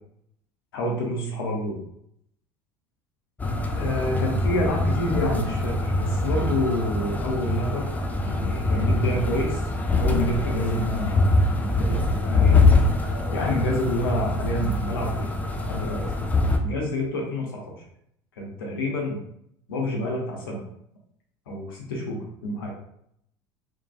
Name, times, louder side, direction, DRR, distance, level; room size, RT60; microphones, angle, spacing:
voice 1, 0.7-1.8 3.8-7.9 8.2-9.6 10.0-11.4 11.6-12.6 13.3-15.3 15.7-16.0 16.6-17.8 18.4-19.2 19.7-20.6 21.5-22.7, left 1 dB, 75° left, -1 dB, 0.6 m, -28 dB
sound 1, 3.4-16.6, left 2 dB, 15° left, 0.3 m, -24 dB
Breathing, 6.5-6.8 7.1-7.2 8.1-8.3 8.5-9.6 10.1-10.8 11.2-12.3 12.8-13.5 14.0-15.0 15.6-16.2, right 3 dB, 10° right, 0.7 m, -36 dB
2.6 x 2.2 x 2.3 m, 0.72 s
hypercardioid pair, 70°, 12 cm